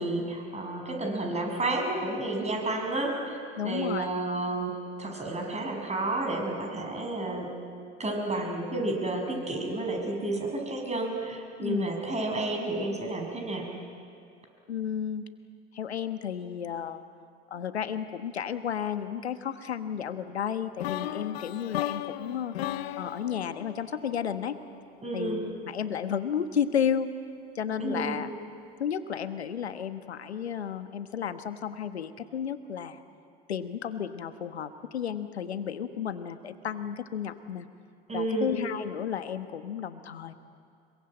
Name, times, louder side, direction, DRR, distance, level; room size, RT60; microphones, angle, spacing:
voice 1, 0.0-3.4 3.6-7.5 8.0-13.7 25.0-25.4 27.8-28.2 38.1-38.5, right 2 dB, 20° right, 2 dB, 6.6 m, -31 dB
voice 2, 3.6-4.1 11.6-11.9 14.7-15.3 15.7-17.0 17.5-22.6 23.0-24.6 25.1-27.1 27.5-28.3 28.8-33.0 33.5-37.7 38.1-40.3, left 8 dB, 90° left, 11 dB, 1.3 m, -32 dB
sound 1, 20.8-24.8, left 13 dB, 75° left, 0.9 m, -36 dB
25.5 x 23.0 x 8.9 m, 2.3 s
hypercardioid pair, 80°, 31 cm